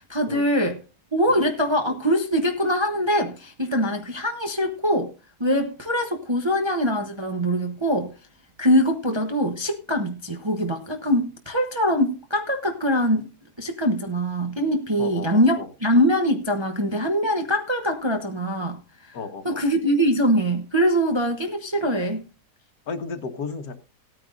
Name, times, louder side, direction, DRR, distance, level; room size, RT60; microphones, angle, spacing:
voice 1, 0.1-0.8 1.1-5.1 5.4-8.1 8.6-13.3 13.6-18.8 19.4-22.2, equal, 25° right, 0.7 m, -23 dB
voice 2, 15.0-15.7 19.1-19.6 22.9-23.7, left 4 dB, 65° left, 1.6 m, -33 dB
18.0 x 9.4 x 2.5 m
omnidirectional pair, 1.7 m